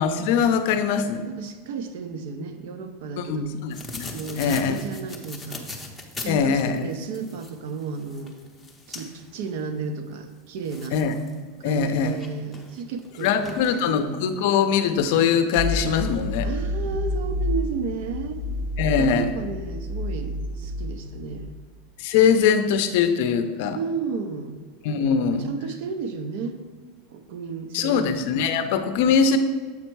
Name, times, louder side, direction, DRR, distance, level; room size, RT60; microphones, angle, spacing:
voice 1, 0.0-1.2 3.2-4.8 6.3-6.9 10.9-11.2 11.6-12.2 13.2-16.5 18.8-19.3 22.0-23.8 24.8-25.5 27.7-29.4, left 7 dB, 55° left, 9 dB, 0.5 m, -22 dB
voice 2, 1.3-3.5 4.1-5.7 6.2-8.4 8.9-11.0 11.6-14.0 16.4-18.4 19.0-21.5 22.6-22.7 23.7-24.6 25.4-26.6 27.1-28.1, right 5 dB, 60° right, 9 dB, 0.6 m, -33 dB
sound 1, 3.7-9.5 10.1-10.2 10.6-11.3 11.7-14.1 14.8-14.9 15.1-15.3, left 2 dB, 5° left, 0.7 m, -40 dB
sound 2, 15.6-21.4, left 1 dB, 85° right, 1.4 m, -29 dB
7.2 x 4.3 x 4.6 m, 1.4 s
supercardioid pair, 165°, 0 cm